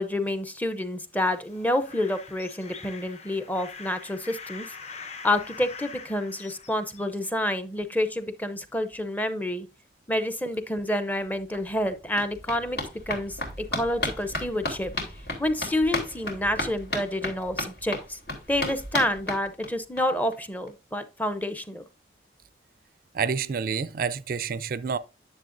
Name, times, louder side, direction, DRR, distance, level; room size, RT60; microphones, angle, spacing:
voice 1, 0.0-9.7 10.1-12.8 13.1-14.9 15.4-18.2 18.5-21.8, left 1 dB, 10° left, 0.6 m, -28 dB
sound 1, 1.2-7.1, left 5 dB, 35° left, 0.9 m, -44 dB
sound 2, 11.2-11.3 11.5-20.0 20.3-20.4 20.7-20.8 21.0-21.1, left 2 dB, 70° left, 3.1 m, -34 dB
voice 2, 23.1-25.0, right 6 dB, 50° right, 0.4 m, -28 dB
10.5 x 7.0 x 2.6 m
head